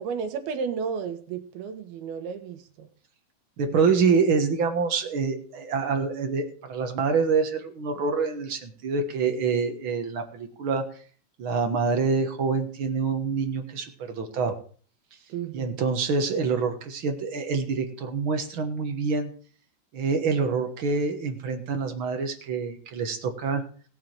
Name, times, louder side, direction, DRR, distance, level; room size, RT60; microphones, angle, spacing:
voice 1, 0.0-2.9 15.3-15.9, right 6 dB, 80° right, 7 dB, 3.3 m, -33 dB
voice 2, 3.6-10.8 11.4-14.6 15.5-19.3 19.9-23.6, right 5 dB, 60° right, 5 dB, 1.3 m, -26 dB
18.0 x 7.6 x 4.6 m, 0.42 s
omnidirectional pair, 4.3 m